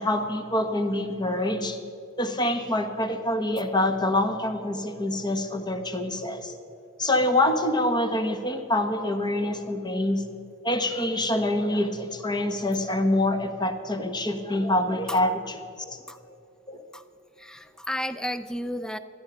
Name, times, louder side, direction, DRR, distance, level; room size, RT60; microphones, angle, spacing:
voice 1, 0.0-1.8 2.2-6.6 7.0-10.2 10.6-15.6 15.9-16.0 16.7-16.8, left 1 dB, 20° left, 6 dB, 1.0 m, -26 dB
voice 2, 17.4-19.0, equal, 5° left, 12 dB, 0.4 m, -32 dB
16.0 x 12.5 x 5.2 m, 2.6 s
head